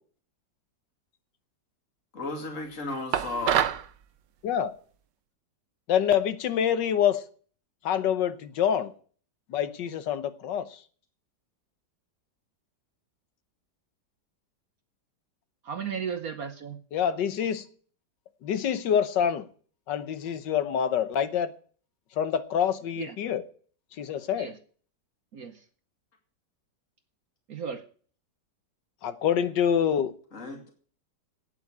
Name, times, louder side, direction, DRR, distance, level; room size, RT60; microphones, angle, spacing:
voice 1, 2.1-3.7 30.3-30.7, left 2 dB, 45° left, 2.8 m, -34 dB
sound 1, 3.1-3.9, right 10 dB, 75° right, 1.4 m, -25 dB
voice 2, 5.9-7.2 7.8-8.9 9.5-10.7 16.9-17.6 18.4-19.4 19.9-21.5 22.2-23.4 24.0-24.5 29.0-30.1, left 9 dB, 80° left, 1.6 m, -26 dB
voice 3, 15.6-16.8 23.0-23.1 24.4-24.6 25.3-25.6 27.5-27.8, right 7 dB, 60° right, 1.3 m, -35 dB
9.0 x 8.4 x 8.5 m
omnidirectional pair, 1.9 m